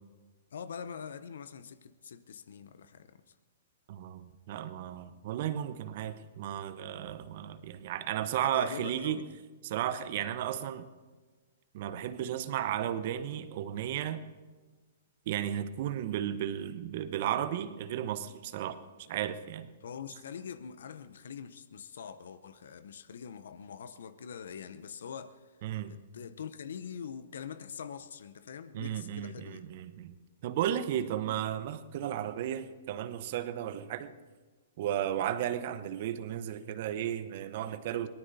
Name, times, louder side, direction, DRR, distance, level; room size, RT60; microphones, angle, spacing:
voice 1, 0.5-3.2 8.4-9.4 19.8-25.6 25.9-29.6, left 7 dB, 70° left, 0.7 m, -44 dB
voice 2, 3.9-9.2 9.6-10.9 11.7-14.2 15.3-18.8 19.1-19.7 25.6-25.9 28.7-30.1 30.4-34.1 34.8-38.1, right 10 dB, 55° right, 0.9 m, -34 dB
22.5 x 18.5 x 2.7 m
hypercardioid pair, 115°, 0 cm